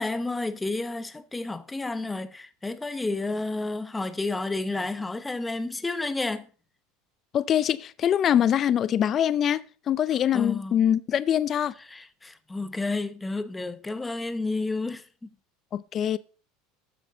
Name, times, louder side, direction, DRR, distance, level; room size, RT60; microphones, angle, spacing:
voice 1, 0.0-6.5 10.3-10.8 11.9-15.3, left 2 dB, 10° left, 0.9 m, -31 dB
voice 2, 7.3-11.7 15.7-16.2, left 9 dB, 35° left, 0.4 m, -24 dB
13.0 x 7.7 x 3.9 m
supercardioid pair, 130°, 0 cm